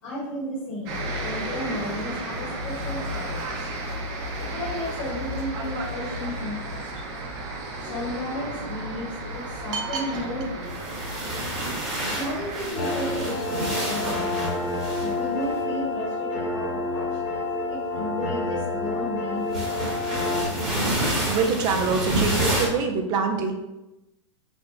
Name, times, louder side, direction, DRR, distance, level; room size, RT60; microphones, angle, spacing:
voice 1, 0.0-3.6 4.3-6.9 7.8-11.0 12.1-14.6 14.9-20.0, left 1 dB, 55° left, -7 dB, 1.3 m, -34 dB
sound 1, 0.9-12.7, right 1 dB, 45° right, 0.8 m, -33 dB
voice 2, 9.7-10.0 21.3-23.5, right 5 dB, 25° right, 4 dB, 0.4 m, -25 dB
sound 2, 10.5-15.6 17.3-17.6 19.5-22.7, right 1 dB, ahead, 1.0 m, -29 dB
sound 3, 12.7-20.4, left 2 dB, 35° left, 0.7 m, -28 dB
3.4 x 2.1 x 3.7 m, 0.97 s
hypercardioid pair, 145°, 16 cm